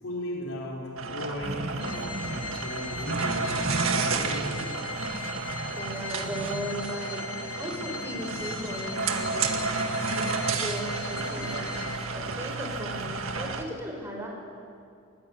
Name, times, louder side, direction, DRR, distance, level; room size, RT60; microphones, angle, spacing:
voice 1, 0.0-4.9 5.2-5.3, equal, 75° left, -2 dB, 5.2 m, -37 dB
sound 1, 1.0-13.6, right 4 dB, 70° right, 1.8 m, -32 dB
sound 2, 1.4-13.6, right 1 dB, 35° right, 1.1 m, -40 dB
Organ, 1.8-12.4, left 7 dB, 20° left, 2.3 m, -40 dB
voice 2, 5.7-7.3 7.6-9.7 10.2-11.8 12.1-14.3, equal, 10° right, 0 dB, 5.4 m, -37 dB
24.0 x 19.5 x 9.0 m, 2.4 s
head